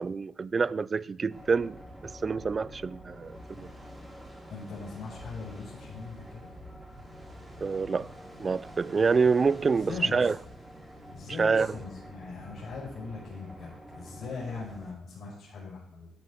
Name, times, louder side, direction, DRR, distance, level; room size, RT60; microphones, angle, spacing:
voice 1, 0.0-1.8 2.0-3.7 7.6-8.1 8.4-10.4 11.4-11.7, right 5 dB, 35° right, 0.3 m, -27 dB
sound 1, 1.3-14.9, equal, 5° right, 4.0 m, -47 dB
voice 2, 4.5-6.5 9.9-10.3 11.1-16.1, left 4 dB, 65° left, 5.5 m, -40 dB
12.0 x 10.5 x 3.6 m
cardioid pair, 90°, 0 cm